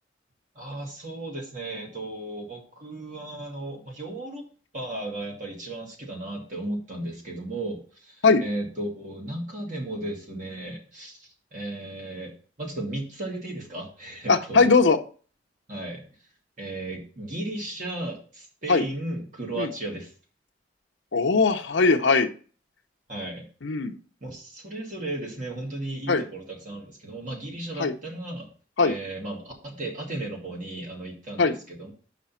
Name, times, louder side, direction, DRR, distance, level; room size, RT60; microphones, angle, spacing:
voice 1, 0.6-4.4 4.7-12.3 12.6-14.7 15.7-16.0 16.6-20.1 23.1-23.5 24.2-28.5 28.8-31.9, right 1 dB, 40° right, -1 dB, 1.9 m, -35 dB
voice 2, 14.3-15.0 18.7-18.8 19.6-19.7 21.1-22.3 23.6-24.0 26.1-26.2 27.8-27.9 28.8-28.9 31.4-31.5, left 4 dB, 75° left, 6 dB, 0.7 m, -20 dB
6.0 x 5.0 x 5.6 m, 0.39 s
head